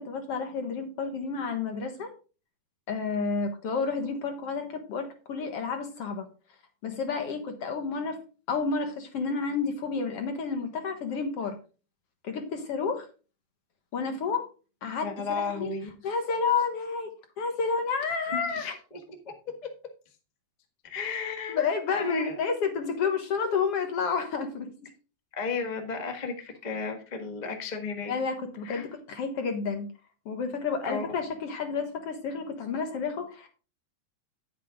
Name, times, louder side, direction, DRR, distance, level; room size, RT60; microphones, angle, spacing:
voice 1, 0.0-2.1 2.9-6.3 6.8-8.2 8.5-11.6 12.2-13.1 13.9-14.5 14.8-15.7 16.0-17.1 17.4-18.7 21.5-24.7 28.1-29.9 30.3-33.5, left 5 dB, 60° left, 6 dB, 2.0 m, -30 dB
voice 2, 15.0-15.9 18.3-19.0 20.8-21.7 22.0-22.4 25.4-28.1 28.6-28.9 30.8-31.1, left 4 dB, 25° left, 4 dB, 1.0 m, -33 dB
9.9 x 7.9 x 3.6 m, 0.34 s
omnidirectional pair, 3.5 m